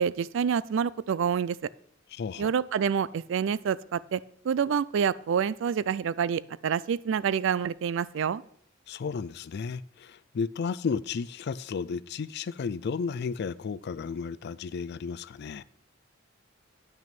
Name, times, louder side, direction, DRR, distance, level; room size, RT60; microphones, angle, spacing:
voice 1, 0.0-1.6 2.4-8.4, right 7 dB, 70° right, 0.3 m, -27 dB
voice 2, 2.1-2.5 8.9-15.6, left 5 dB, 55° left, 0.4 m, -33 dB
9.0 x 6.0 x 5.9 m
head